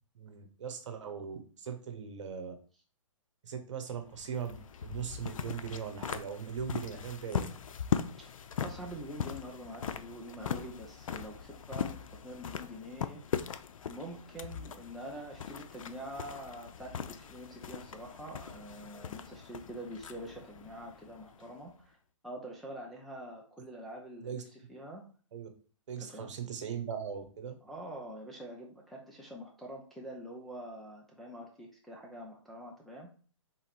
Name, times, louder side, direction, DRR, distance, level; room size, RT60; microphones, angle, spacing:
voice 1, 0.1-2.5 3.4-7.5 24.2-24.4 25.3-25.5 25.9-27.6, right 7 dB, 65° right, 7 dB, 1.0 m, -39 dB
sound 1, 4.0-21.7, left 7 dB, 80° left, 0.5 m, -40 dB
voice 2, 8.6-13.2 13.9-21.9 22.2-25.1 26.0-26.3 27.6-33.1, equal, ahead, -3 dB, 0.4 m, -45 dB
3.8 x 2.9 x 4.3 m, 0.40 s
hypercardioid pair, 145°, 17 cm